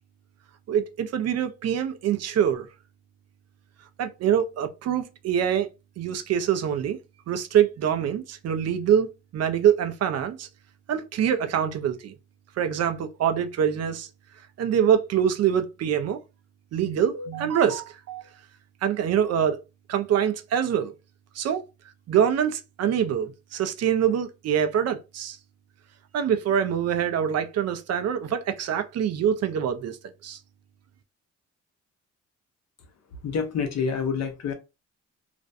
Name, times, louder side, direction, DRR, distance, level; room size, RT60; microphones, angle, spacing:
voice 1, 0.7-2.7 4.0-5.7 6.0-7.0 7.3-10.5 10.9-12.1 12.6-14.1 14.6-16.2 16.7-18.2 18.8-19.6 19.9-20.9 21.4-21.6 22.1-25.4 26.1-30.0 30.2-30.4, right 9 dB, 55° right, 0.5 m, -24 dB
voice 2, 33.1-34.5, left 6 dB, 60° left, 0.7 m, -28 dB
2.4 x 2.1 x 2.5 m
cardioid pair, 90°, 30 cm